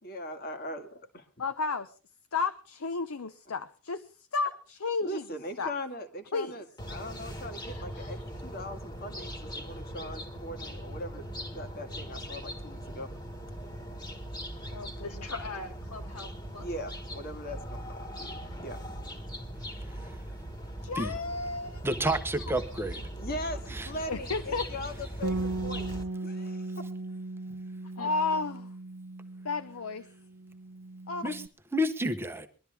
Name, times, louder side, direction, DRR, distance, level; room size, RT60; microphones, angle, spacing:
voice 1, 0.0-1.3 5.0-13.1 16.6-18.8 23.1-25.9 26.2-26.9, equal, 40° left, 7 dB, 1.9 m, -40 dB
voice 2, 1.4-1.9 2.3-4.1 4.3-5.2 5.6-5.7 6.3-6.5 14.7-15.1 20.8-21.9 24.1-24.7 28.0-28.7 29.4-30.1 31.1-31.3, left 4 dB, 70° left, 11 dB, 0.8 m, -32 dB
sound 1, 6.8-26.0, equal, 20° left, 1.8 m, -40 dB
voice 3, 7.6-8.2 15.0-16.7 17.5-17.7 27.8-28.1, left 3 dB, 90° left, 2 dB, 3.3 m, -43 dB
voice 4, 21.8-23.0 23.7-23.9 31.2-31.4 31.7-32.5, equal, 10° right, 7 dB, 0.9 m, -29 dB
Bass guitar, 25.2-29.9 30.2-31.5, right 2 dB, 55° right, 0.6 m, -37 dB
22.0 x 12.5 x 3.5 m, 0.34 s
head